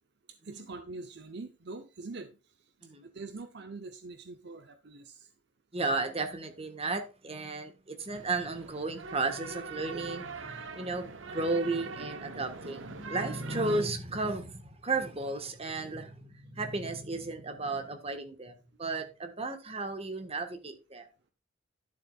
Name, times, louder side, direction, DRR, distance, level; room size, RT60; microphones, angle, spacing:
voice 1, 0.4-2.4 3.0-5.3, right 3 dB, 60° right, 0.8 m, -43 dB
voice 2, 5.7-18.5 18.8-21.1, right 3 dB, 30° right, 1.5 m, -34 dB
sound 1, 8.1-13.8, right 4 dB, 90° right, 1.0 m, -43 dB
12.0 x 7.4 x 2.4 m
head